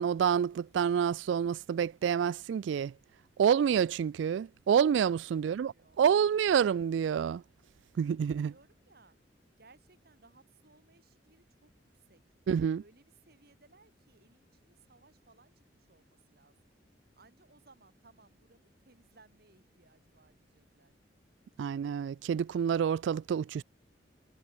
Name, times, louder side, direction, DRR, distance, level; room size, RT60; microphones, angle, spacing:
voice 1, 0.0-2.9 3.4-7.4 8.0-8.5 12.5-12.8 21.6-23.6, right 8 dB, 75° right, 0.3 m, -28 dB
voice 2, 5.2-6.7 8.4-9.2 9.6-12.2 12.6-16.7 17.1-20.9, right 3 dB, 55° right, 4.1 m, -63 dB
head